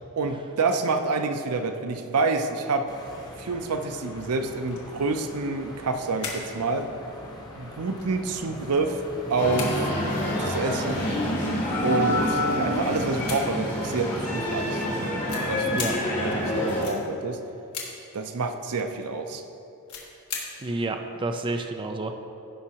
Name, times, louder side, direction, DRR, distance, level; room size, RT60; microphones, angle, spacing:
voice 1, 0.2-2.9 3.4-6.9 7.6-9.0 9.3-9.8 10.1-11.0 11.8-14.8 15.5-17.4 18.1-19.4, right 3 dB, 85° right, 7 dB, 0.6 m, -28 dB
sound 1, 2.9-14.5, left 1 dB, 20° left, 0.9 m, -42 dB
sound 2, 4.6-5.0 5.3-6.5 6.8-6.9 7.5-7.6 8.0-9.0 9.3-10.4 11.2-11.3 11.8-12.5 13.1-13.8 14.8-14.9 15.2-16.0 16.8-17.0 17.7-17.9 19.8-20.4 20.7-20.8, left 6 dB, 75° left, 1.6 m, -37 dB
sound 3, 9.4-16.8, equal, 35° left, 2.1 m, -27 dB
voice 2, 20.6-22.1, right 2 dB, 20° right, 5 dB, 0.4 m, -29 dB
15.5 x 5.7 x 2.9 m, 2.8 s
head